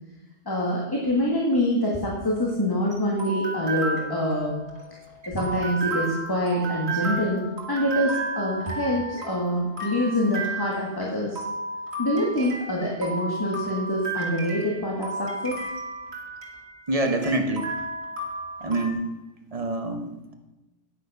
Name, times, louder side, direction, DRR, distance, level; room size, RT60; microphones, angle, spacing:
voice 1, 0.5-4.6 5.3-11.4 12.0-15.6, left 1 dB, 20° left, -3 dB, 1.7 m, -25 dB
sound 1, 2.2-18.9, right 3 dB, 80° right, 2.0 m, -33 dB
voice 2, 16.9-17.7 18.6-19.1 19.5-20.3, right 2 dB, 35° right, 4 dB, 1.2 m, -26 dB
9.4 x 9.0 x 5.5 m, 1.0 s
omnidirectional pair, 1.1 m